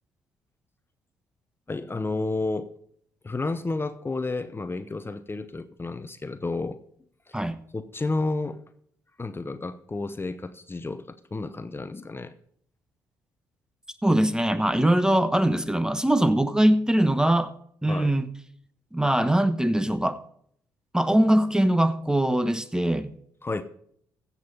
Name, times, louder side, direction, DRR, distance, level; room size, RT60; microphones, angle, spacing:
voice 1, 1.7-2.7 3.2-6.8 7.3-7.4 7.7-8.6 9.2-12.3 17.9-18.1 23.4-23.6, left 3 dB, 25° left, 0.9 m, -31 dB
voice 2, 14.0-17.5 17.8-18.3 18.9-20.2 20.9-23.1, right 1 dB, 5° right, 1.0 m, -22 dB
15.5 x 7.4 x 4.1 m
hypercardioid pair, 45°, 10 cm